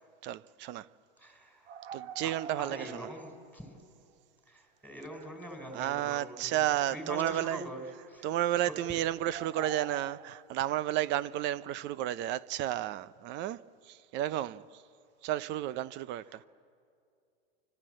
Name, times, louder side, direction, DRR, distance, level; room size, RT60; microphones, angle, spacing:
voice 1, 0.2-0.9 1.9-3.1 5.7-7.6 8.2-14.8 15.2-16.4, right 13 dB, 35° right, 0.7 m, -32 dB
voice 2, 1.2-1.6 2.2-2.3 2.6-3.7 4.5-6.6 6.9-8.3 8.6-8.7 16.3-16.4, equal, 5° right, 4.4 m, -43 dB
sound 1, 1.7-3.4 3.7-3.8 6.3-7.0 7.4-7.7 9.3-10.7, right 8 dB, 80° right, 1.1 m, -45 dB
29.0 x 25.0 x 7.7 m
supercardioid pair, 135°, 32 cm